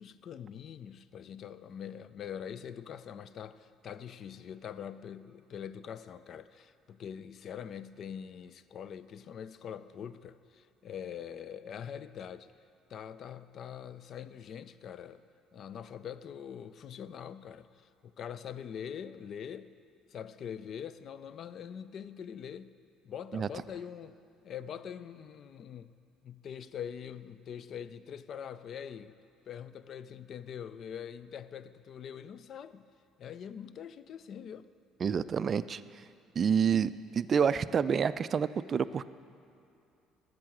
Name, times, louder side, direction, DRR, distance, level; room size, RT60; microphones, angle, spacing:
voice 1, 0.0-12.5 12.9-15.2 15.5-19.7 20.1-22.7 23.0-24.2 24.4-25.9 26.2-29.2 29.5-32.9 33.2-34.7, left 8 dB, 50° left, 15 dB, 0.4 m, -43 dB
voice 2, 35.0-35.8 36.4-39.0, right 7 dB, 40° right, 16 dB, 0.3 m, -28 dB
13.5 x 6.1 x 7.4 m, 2.6 s
figure-of-eight pair, 55°, 0 cm